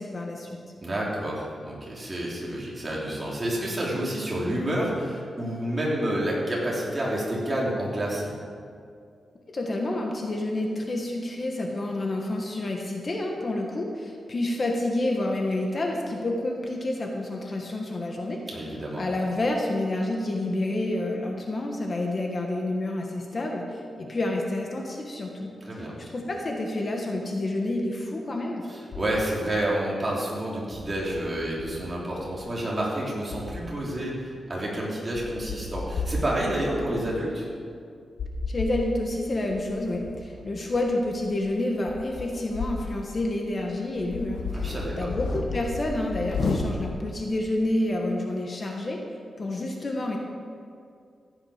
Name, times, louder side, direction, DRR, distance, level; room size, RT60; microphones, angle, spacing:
voice 1, 0.0-0.6 9.5-18.4 19.0-25.5 25.8-28.6 38.5-49.0 49.4-50.2, left 1 dB, 35° left, 1 dB, 1.3 m, -29 dB
voice 2, 0.8-8.3 18.5-19.1 25.6-25.9 28.7-37.5 44.5-45.1, right 1 dB, 25° right, -5 dB, 3.3 m, -29 dB
sound 1, 28.9-29.5 30.7-32.7 33.3-33.9 34.6-34.7 35.1-37.1 38.2-38.8 39.5-43.0 43.4-43.5 43.9-47.1, left 3 dB, 75° left, 1.3 m, -33 dB
15.0 x 9.8 x 5.0 m, 2.3 s
wide cardioid pair, 135°, 0 cm